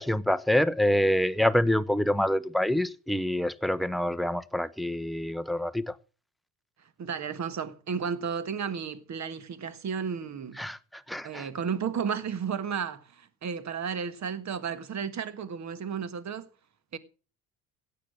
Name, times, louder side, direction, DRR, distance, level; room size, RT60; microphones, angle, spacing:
voice 1, 0.0-5.9 10.6-10.8 11.1-11.5, left 1 dB, ahead, 0.7 m, -26 dB
voice 2, 7.0-10.6 11.2-16.5 16.9-17.0, right 6 dB, 35° right, 1.5 m, -33 dB
16.5 x 7.0 x 6.2 m
hypercardioid pair, 60°, 49 cm